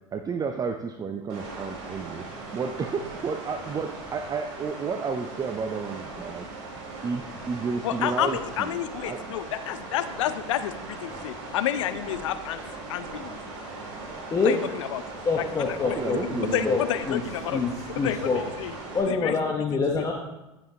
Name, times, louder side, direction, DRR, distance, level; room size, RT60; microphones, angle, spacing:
voice 1, 0.1-6.5 7.0-9.2 15.8-16.8, right 5 dB, 25° right, 7 dB, 0.5 m, -32 dB
sound 1, 1.3-19.0, right 3 dB, 55° right, 3.2 m, -39 dB
voice 2, 7.8-12.6 12.9-13.3 14.4-15.0 15.4-16.2 16.4-17.6 17.9-18.3 18.6-18.8 19.0-19.4 20.0-20.1, left 11 dB, 75° left, 12 dB, 0.6 m, -30 dB
voice 3, 15.2-16.8 17.1-17.2 17.5-17.7 17.9-18.4 18.9-20.1, left 4 dB, 20° left, 0 dB, 1.0 m, -25 dB
10.5 x 7.1 x 2.9 m, 0.99 s
hypercardioid pair, 85°, 16 cm